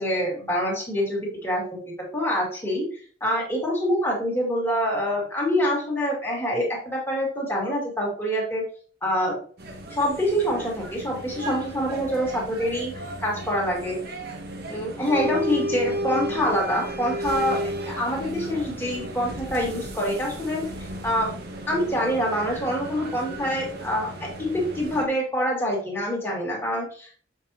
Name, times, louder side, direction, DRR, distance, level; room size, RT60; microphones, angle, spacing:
voice 1, 0.0-2.9 3.2-8.6 9.0-9.4 9.9-12.9 13.2-14.0 14.7-20.7 21.0-21.3 21.7-27.2, equal, 10° left, -3 dB, 2.1 m, -26 dB
sound 1, 9.6-25.1, right 1 dB, 55° right, 1.2 m, -34 dB
7.0 x 5.5 x 2.9 m, 0.43 s
head